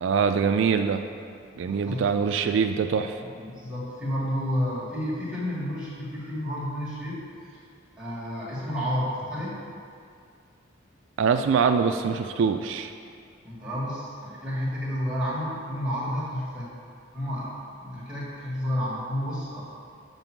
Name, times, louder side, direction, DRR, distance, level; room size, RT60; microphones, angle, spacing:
voice 1, 0.0-1.0 1.6-3.2 11.2-12.9, right 6 dB, 75° right, 7 dB, 0.3 m, -23 dB
voice 2, 1.6-2.0 3.2-7.2 8.0-9.6 13.4-16.7 17.1-17.5 17.8-19.6, equal, 5° right, -8 dB, 1.8 m, -31 dB
5.8 x 5.4 x 5.9 m, 2.3 s
head